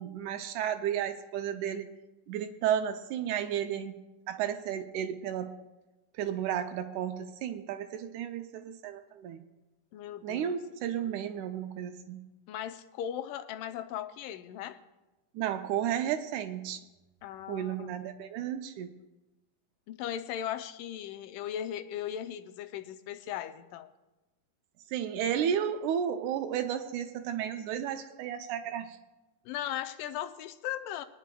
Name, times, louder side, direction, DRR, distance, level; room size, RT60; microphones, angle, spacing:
voice 1, 0.0-1.9 2.3-4.0 4.3-5.5 6.2-9.4 10.2-12.2 15.4-16.8 17.5-18.9 24.9-29.0, right 9 dB, 80° right, 8 dB, 2.0 m, -33 dB
voice 2, 9.9-10.6 12.5-14.8 17.2-17.9 19.9-23.9 29.5-31.0, left 10 dB, 85° left, 10 dB, 2.2 m, -38 dB
22.5 x 10.0 x 2.3 m, 1.0 s
omnidirectional pair, 3.7 m